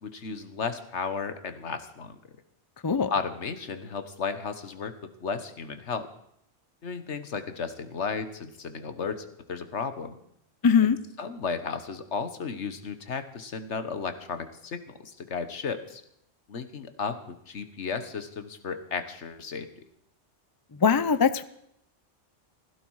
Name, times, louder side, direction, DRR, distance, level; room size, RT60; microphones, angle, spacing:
voice 1, 0.0-2.2 3.1-6.1 6.8-10.2 10.8-10.9 11.2-16.0 16.5-19.7, left 5 dB, 65° left, 10 dB, 1.5 m, -34 dB
voice 2, 10.6-11.0 20.8-21.4, left 6 dB, 30° left, 14 dB, 0.4 m, -21 dB
16.0 x 16.0 x 4.8 m, 0.76 s
omnidirectional pair, 1.3 m